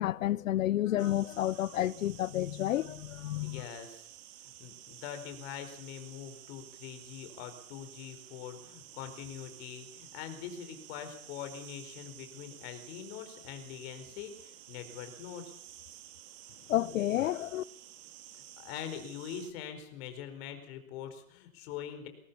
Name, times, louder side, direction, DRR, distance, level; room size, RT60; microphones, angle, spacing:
voice 1, 0.0-3.6 16.7-17.6, left 13 dB, 65° left, 0.9 m, -30 dB
sound 1, 1.0-19.5, right 12 dB, 35° right, 2.7 m, -52 dB
voice 2, 3.4-4.1 4.4-15.5 18.3-22.1, left 9 dB, 45° left, 4.8 m, -43 dB
22.5 x 17.5 x 7.1 m
hypercardioid pair, 120°, 43 cm